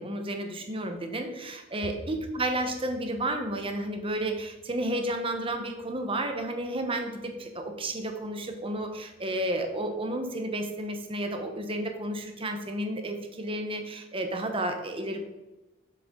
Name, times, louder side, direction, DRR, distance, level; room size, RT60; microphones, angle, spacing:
voice 1, 0.0-15.2, right 1 dB, 25° right, 5 dB, 1.0 m, -32 dB
sound 1, 1.1-12.3, right 1 dB, 70° right, 3.0 m, -54 dB
7.7 x 6.7 x 3.8 m, 1.1 s
head